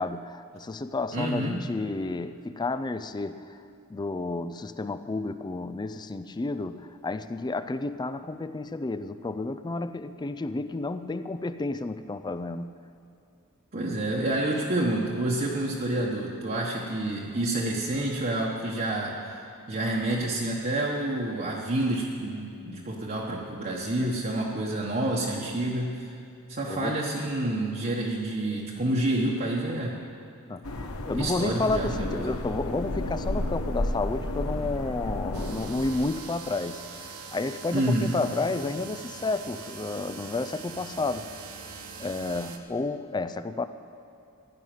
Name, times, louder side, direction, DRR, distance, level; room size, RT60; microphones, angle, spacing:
voice 1, 0.0-3.6 3.9-12.7 26.7-27.2 30.5-30.7 31.1-41.3 42.0-43.7, left 3 dB, 20° left, 12 dB, 0.4 m, -31 dB
voice 2, 1.1-1.6 13.7-19.4 19.7-26.1 26.5-30.0 31.2-32.2 37.7-38.1, right 1 dB, 40° right, -4 dB, 1.2 m, -28 dB
sound 1, 30.6-36.2, left 1 dB, 75° left, 1.0 m, -32 dB
sound 2, 35.3-42.6, right 5 dB, 70° right, 1.0 m, -42 dB
16.0 x 5.7 x 9.1 m, 2.6 s
head